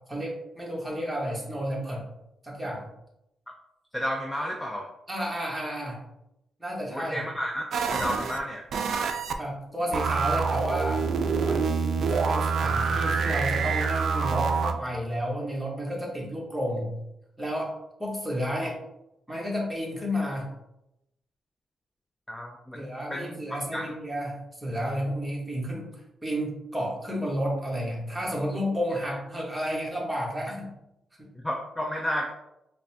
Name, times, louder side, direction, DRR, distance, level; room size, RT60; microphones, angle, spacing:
voice 1, 0.1-2.0 2.4-2.9 5.1-6.0 6.6-7.2 9.4-11.1 11.4-16.9 17.4-17.7 18.0-18.8 19.3-20.5 22.7-25.9 26.2-30.7, equal, 5° right, -4 dB, 1.2 m, -31 dB
voice 2, 3.9-4.9 6.9-7.7 7.9-8.7 22.3-23.3 23.7-23.9 31.4-32.3, equal, 10° left, 0 dB, 0.4 m, -31 dB
sound 1, 7.7-8.4 8.7-9.3 9.9-14.7, right 5 dB, 70° right, 0.4 m, -26 dB
5.1 x 2.1 x 2.8 m, 0.86 s
cardioid pair, 115°, 0 cm